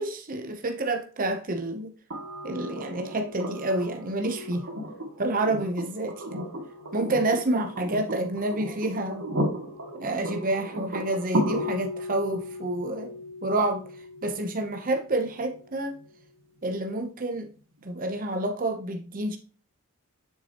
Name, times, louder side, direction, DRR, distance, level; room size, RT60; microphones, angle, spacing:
voice 1, 0.0-1.9 2.4-4.7 5.2-6.5 6.9-9.2 9.9-13.1 13.4-13.8 14.2-16.0 16.6-17.5 17.8-19.4, right 2 dB, 40° right, 0.8 m, -28 dB
sound 1, 2.1-16.0 17.8-17.9, equal, 70° right, 2.4 m, -35 dB
7.4 x 6.0 x 2.9 m
head